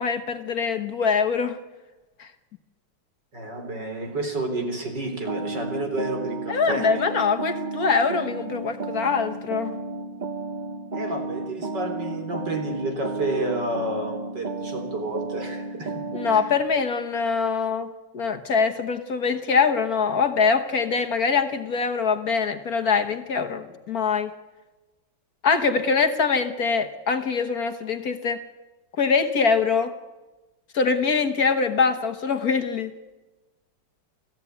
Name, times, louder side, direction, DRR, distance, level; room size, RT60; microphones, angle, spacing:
voice 1, 0.0-1.6 2.2-2.3 6.5-9.8 16.1-17.9 18.1-24.3 25.4-28.4 29.0-29.9 30.7-32.9, left 5 dB, 55° left, 7 dB, 1.6 m, -23 dB
voice 2, 3.3-6.9 10.9-16.4, right 2 dB, 65° right, 5 dB, 4.6 m, -30 dB
sound 1, 5.3-16.6, right 3 dB, 35° right, 0.8 m, -33 dB
28.5 x 15.5 x 9.6 m, 1.2 s
omnidirectional pair, 2.1 m